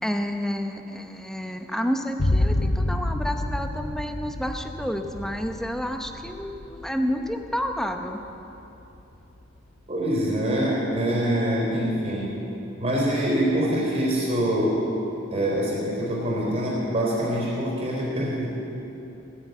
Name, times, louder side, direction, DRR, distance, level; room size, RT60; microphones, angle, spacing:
voice 1, 0.0-8.2, equal, ahead, 5 dB, 0.8 m, -30 dB
sound 1, 2.2-9.6, left 1 dB, 50° left, 0.7 m, -29 dB
voice 2, 9.9-12.3 12.8-14.8 15.3-18.5, equal, 30° right, -4 dB, 3.8 m, -24 dB
15.0 x 9.9 x 8.2 m, 3.0 s
head